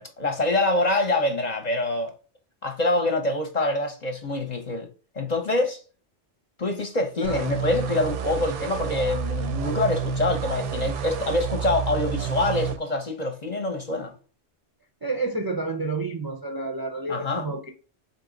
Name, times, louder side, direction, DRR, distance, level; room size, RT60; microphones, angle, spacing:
voice 1, 0.0-2.1 2.6-4.9 5.1-5.8 6.6-14.1 17.1-17.5, left 2 dB, 45° left, 0.7 m, -25 dB
sound 1, 7.2-12.8, right 7 dB, 90° right, 0.9 m, -29 dB
voice 2, 15.0-17.7, right 3 dB, 30° right, 0.4 m, -30 dB
4.1 x 2.9 x 3.8 m
omnidirectional pair, 1.2 m